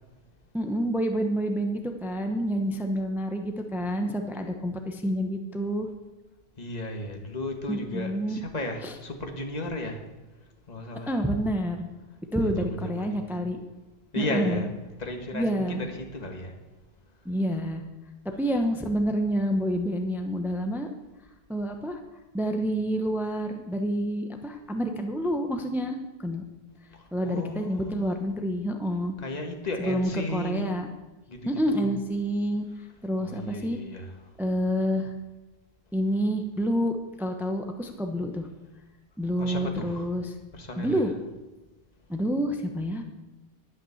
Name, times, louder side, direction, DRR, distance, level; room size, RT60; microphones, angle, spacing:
voice 1, 0.5-5.9 7.7-8.4 8.8-8.9 11.1-11.9 12.3-13.6 14.2-14.7 15.3-15.8 17.2-17.8 18.4-20.9 21.5-22.0 22.3-26.0 26.2-26.4 27.1-29.1 29.8-30.9 31.4-32.7 33.0-33.8 34.4-35.1 35.9-38.5 39.2-40.3 40.8-41.1 42.1-43.0, equal, ahead, 5 dB, 0.9 m, -28 dB
voice 2, 6.6-10.0 10.7-11.2 12.4-13.5 14.1-14.7 15.0-16.5 26.9-28.1 29.2-30.7 31.3-31.9 33.2-34.1 39.4-40.1 40.5-41.0, left 1 dB, 40° left, 3 dB, 1.7 m, -35 dB
12.0 x 9.3 x 7.2 m, 1.1 s
omnidirectional pair, 1.1 m